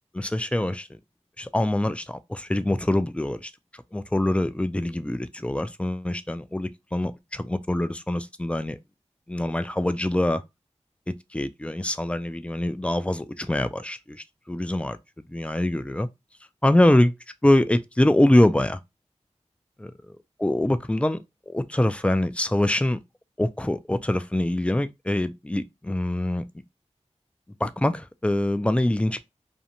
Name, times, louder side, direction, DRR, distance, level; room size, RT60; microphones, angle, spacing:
voice 1, 0.1-1.0 1.4-3.5 3.9-8.8 9.3-10.4 11.1-16.1 16.6-17.1 17.4-18.8 19.8-20.1 20.4-21.2 21.5-23.0 23.4-26.5 27.6-29.2, left 1 dB, 10° left, 0.3 m, -24 dB
2.6 x 2.1 x 2.8 m
wide cardioid pair, 45°, 12 cm